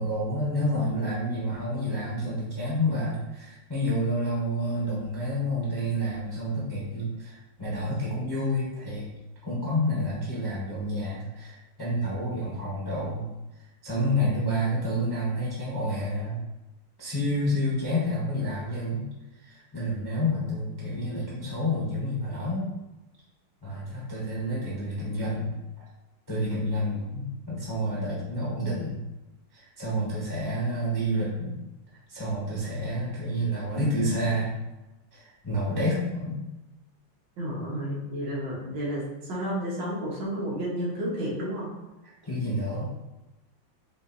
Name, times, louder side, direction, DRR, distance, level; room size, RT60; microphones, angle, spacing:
voice 1, 0.0-9.1 9.4-13.3 13.8-16.4 17.0-19.1 19.4-22.7 23.6-25.5 26.3-29.0 29.5-31.6 32.1-34.5 35.1-36.4 42.2-42.9, equal, 25° left, -8 dB, 0.5 m, -29 dB
voice 2, 37.4-41.7, equal, 65° right, -5 dB, 1.7 m, -31 dB
6.0 x 2.5 x 2.6 m, 1.0 s
omnidirectional pair, 2.1 m